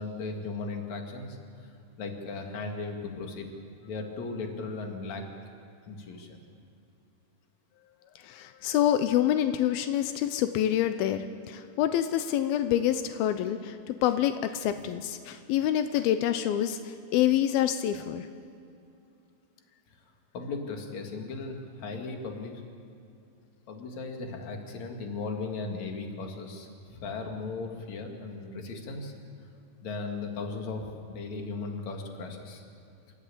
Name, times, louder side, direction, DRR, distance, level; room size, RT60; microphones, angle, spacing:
voice 1, 0.0-1.4 1.6-1.7 2.0-3.5 3.8-5.2 5.9-6.4 14.6-14.7 20.3-22.6 23.7-29.1 29.8-32.6, left 3 dB, 50° left, 3 dB, 3.2 m, -37 dB
voice 2, 8.3-16.8 17.1-18.3, left 11 dB, 85° left, 9 dB, 2.6 m, -27 dB
27.5 x 14.0 x 8.6 m, 2.6 s
omnidirectional pair, 4.3 m